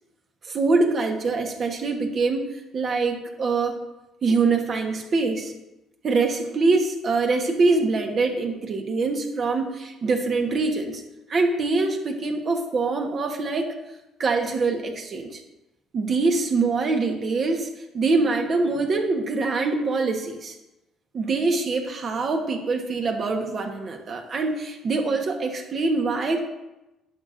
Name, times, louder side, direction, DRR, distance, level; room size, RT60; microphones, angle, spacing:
voice 1, 0.5-2.5 2.7-3.8 4.2-5.5 6.0-11.0 11.3-13.7 14.2-15.4 15.9-17.7 17.9-20.5 21.1-26.5, right 3 dB, 50° right, 3 dB, 1.4 m, -24 dB
10.5 x 6.5 x 2.7 m, 0.97 s
supercardioid pair, 70°, 0 cm